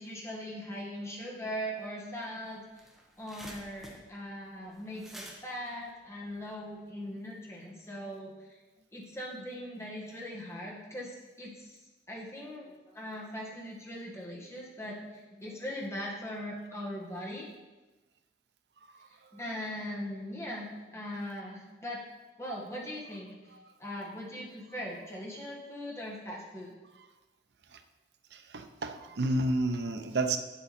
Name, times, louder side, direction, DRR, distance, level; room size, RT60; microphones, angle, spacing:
voice 1, 0.0-2.6 3.2-8.3 8.9-11.7 12.1-17.5 19.3-22.0 22.4-23.4 23.8-26.7, equal, 15° left, -4 dB, 1.6 m, -40 dB
sound 1, 2.5-6.8, right 1 dB, ahead, 1.0 m, -50 dB
voice 2, 28.3-30.4, right 2 dB, 70° right, 7 dB, 0.7 m, -30 dB
8.4 x 7.4 x 4.2 m, 1.2 s
head